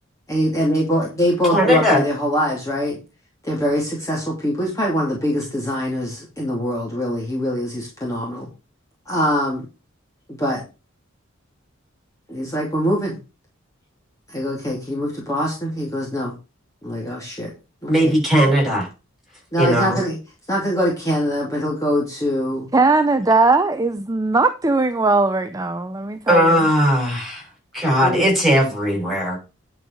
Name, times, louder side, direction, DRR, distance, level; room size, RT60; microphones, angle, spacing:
voice 1, 0.3-3.0 3.4-8.5 9.1-9.7 10.3-10.6 12.3-13.2 14.3-16.3 16.8-17.5 17.8-18.1 19.5-20.2 20.5-22.7 28.0-28.2, equal, 15° left, 2.6 m, -23 dB
voice 2, 1.5-2.0 17.9-18.9 19.6-20.0 26.3-27.4 27.7-29.4, equal, ahead, 7.1 m, -18 dB
voice 3, 22.7-26.7, right 3 dB, 20° right, 0.6 m, -19 dB
10.5 x 4.8 x 6.4 m
head